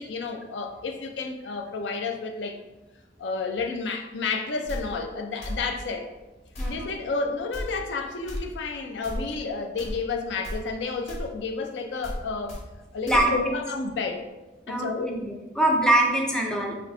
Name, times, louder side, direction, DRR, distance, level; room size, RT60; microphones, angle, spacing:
voice 1, 0.0-2.6 3.2-6.1 6.7-12.6 12.9-14.3 14.7-15.2, left 4 dB, 75° left, 5 dB, 0.5 m, -31 dB
sound 1, 4.7-4.8 5.4-5.6 6.5-6.8 7.5-7.7 8.3-8.4 9.0-9.2 9.8-10.0 10.4-10.6 11.1-11.3 12.0-12.2 12.5-12.6 13.1-13.2, left 1 dB, 40° left, 1.2 m, -33 dB
voice 2, 13.1-13.4 14.7-16.8, right 1 dB, 5° left, 0 dB, 0.4 m, -23 dB
5.0 x 2.4 x 3.2 m, 1.1 s
head